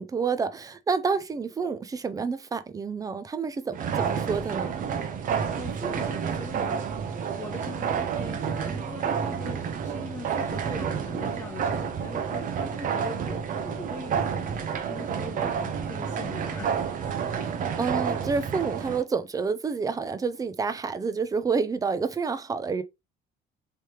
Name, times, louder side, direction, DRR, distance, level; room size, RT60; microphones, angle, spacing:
voice 1, 0.0-4.7 17.7-22.8, right 5 dB, 20° right, 0.4 m, -29 dB
sound 1, 3.7-19.0, right 7 dB, 55° right, 0.7 m, -30 dB
voice 2, 5.5-6.8 7.4-17.5, left 2 dB, 20° left, 1.1 m, -41 dB
3.3 x 3.1 x 2.9 m
cardioid pair, 110°, 17 cm